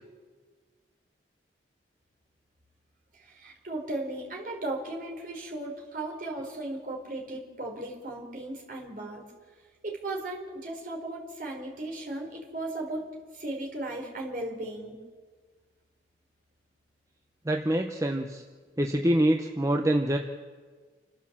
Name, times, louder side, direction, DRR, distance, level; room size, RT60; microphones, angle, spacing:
voice 1, 3.3-9.2 9.8-13.1 13.3-14.9, right 2 dB, 50° right, -1 dB, 4.5 m, -36 dB
voice 2, 17.4-18.4 18.8-20.2, right 1 dB, 20° right, 4 dB, 0.8 m, -25 dB
28.0 x 13.0 x 7.4 m, 1.5 s
head